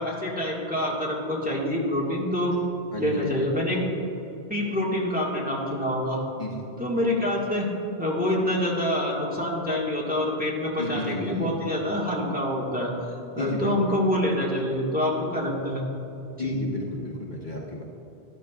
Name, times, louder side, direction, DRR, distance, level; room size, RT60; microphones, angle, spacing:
voice 1, 0.0-2.5 3.0-3.8 4.5-6.2 6.8-7.7 8.0-12.9 13.3-15.8 16.4-16.6, left 1 dB, 10° right, -5 dB, 1.6 m, -26 dB
voice 2, 2.9-3.4 6.4-6.7 10.8-11.6 13.4-14.1 16.4-17.8, left 2 dB, 45° left, -4 dB, 1.3 m, -33 dB
13.5 x 12.0 x 2.4 m, 3.0 s
omnidirectional pair, 1.1 m